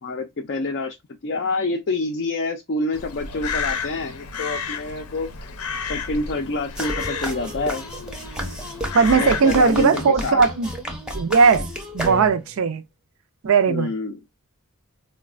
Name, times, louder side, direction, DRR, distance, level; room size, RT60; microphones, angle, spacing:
voice 1, 0.0-1.0 1.2-5.3 5.8-7.9 9.1-10.5 13.7-14.2, left 3 dB, 50° left, 0.4 m, -27 dB
Crow, 2.9-9.8, left 5 dB, 90° left, 0.6 m, -32 dB
sound 1, 6.8-12.6, equal, 5° right, 0.6 m, -31 dB
voice 2, 8.9-10.7 11.1-11.7 11.9-12.8 13.4-13.9, right 5 dB, 65° right, 0.4 m, -18 dB
3.9 x 2.2 x 2.3 m
head